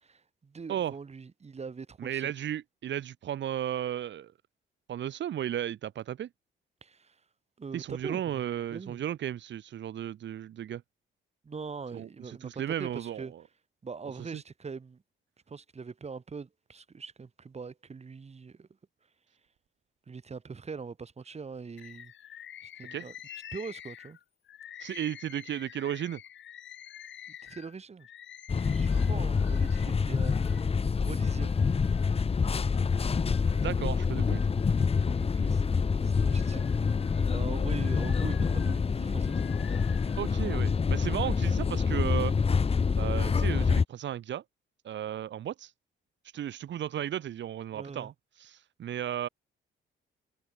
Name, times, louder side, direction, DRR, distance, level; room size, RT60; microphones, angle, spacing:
voice 1, 0.0-2.3 6.8-7.1 7.6-8.4 8.7-9.0 11.4-12.5 12.8-13.3 13.8-15.0 15.5-18.7 20.1-22.1 22.6-23.1 23.5-24.2 27.3-28.1 28.7-30.7 31.0-31.5 35.2-36.9 37.3-40.2 47.7-48.1, right 5 dB, 35° right, 2.8 m, -42 dB
voice 2, 2.0-4.3 4.9-6.3 7.7-10.8 11.9-13.4 14.2-14.4 22.9-23.1 24.8-26.2 33.5-34.4 40.2-42.3 43.0-44.4 44.8-45.7 46.3-48.1 48.4-49.3, right 10 dB, 65° right, 2.4 m, -34 dB
Bird, 21.8-30.7 31.2-32.2 32.7-33.8 34.2-35.6 36.1-40.3 41.0-41.5, left 10 dB, 70° left, 4.1 m, -49 dB
sound 1, 28.5-43.8, left 5 dB, 30° left, 1.1 m, -27 dB
cardioid pair, 90°, 20 cm